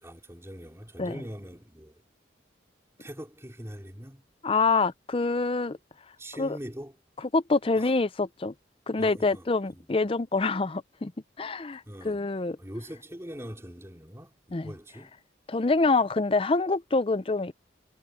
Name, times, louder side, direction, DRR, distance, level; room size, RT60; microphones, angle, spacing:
voice 1, 0.0-2.0 3.0-4.2 6.2-6.9 7.8-7.9 9.0-9.9 11.9-12.2 12.6-15.2, equal, 15° right, 3.9 m, -42 dB
voice 2, 4.4-5.8 6.4-6.6 7.3-8.5 8.9-11.1 11.4-12.6 14.5-14.7 15.5-17.5, left 3 dB, 30° left, 0.5 m, -26 dB
head